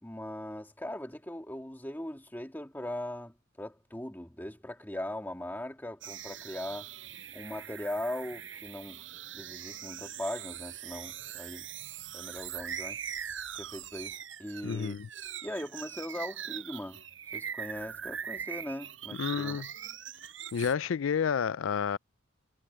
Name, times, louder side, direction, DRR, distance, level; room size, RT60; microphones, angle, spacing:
voice 1, 0.0-6.9 7.3-9.0 9.3-11.7 12.1-13.0 13.5-15.0 15.4-17.0 17.3-19.6, left 1 dB, 10° left, 2.1 m, -39 dB
sound 1, 6.0-20.7, right 9 dB, 75° right, 5.9 m, -42 dB
voice 2, 14.6-15.1 19.2-19.7 20.5-22.0, left 7 dB, 90° left, 0.4 m, -30 dB
head